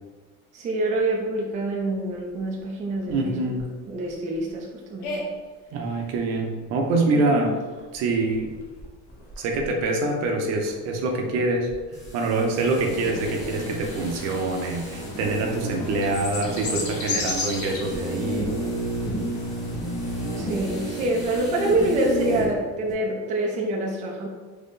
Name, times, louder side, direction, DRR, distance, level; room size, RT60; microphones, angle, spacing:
voice 1, 0.5-3.4 3.9-5.3 7.1-7.5 20.4-24.3, right 2 dB, 25° right, -1 dB, 0.5 m, -26 dB
sound 1, 0.9-20.4, equal, 85° left, 1.3 m, -44 dB
voice 2, 3.0-3.6 5.7-7.6 7.9-8.5 9.4-11.7 12.1-18.5, right 2 dB, 60° right, 2 dB, 0.8 m, -25 dB
sound 2, 11.9-22.6 22.9-23.0, right 1 dB, 25° left, 1.5 m, -32 dB
sound 3, 12.7-21.5, left 3 dB, 50° left, 1.0 m, -36 dB
4.0 x 3.0 x 3.7 m, 1.3 s
cardioid pair, 165°, 29 cm